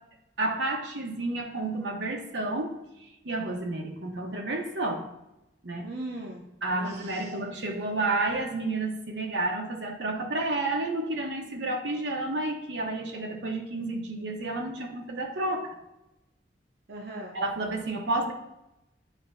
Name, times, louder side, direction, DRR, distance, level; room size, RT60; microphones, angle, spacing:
voice 1, 0.4-2.8 3.2-5.0 5.6-5.9 6.6-15.7 17.3-18.3, right 2 dB, 85° right, 1 dB, 1.1 m, -30 dB
voice 2, 5.8-7.3 16.9-17.4, right 1 dB, 65° right, -1 dB, 0.8 m, -40 dB
9.4 x 4.5 x 2.7 m, 0.92 s
head